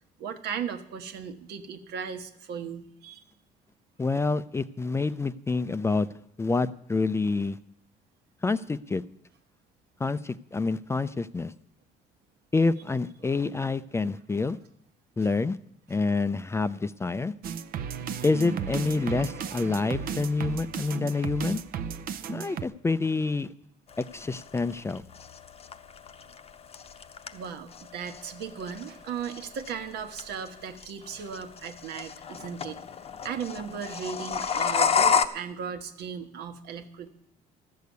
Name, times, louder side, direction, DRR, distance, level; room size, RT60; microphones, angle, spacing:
voice 1, 0.2-3.2 18.0-18.2 27.3-32.8 33.2-37.1, right 7 dB, 75° right, 7 dB, 1.3 m, -37 dB
voice 2, 4.0-6.1 6.4-7.6 8.4-9.0 10.0-11.5 12.5-14.6 15.2-15.6 15.9-17.3 18.2-21.6 22.3-23.5 24.0-25.0, left 3 dB, 15° left, 14 dB, 0.4 m, -27 dB
sound 1, 17.4-22.6, right 7 dB, 60° right, 0.7 m, -34 dB
sound 2, 23.9-35.2, left 6 dB, 35° left, 0.8 m, -31 dB
13.5 x 6.7 x 9.4 m, 0.72 s
cardioid pair, 110°, 17 cm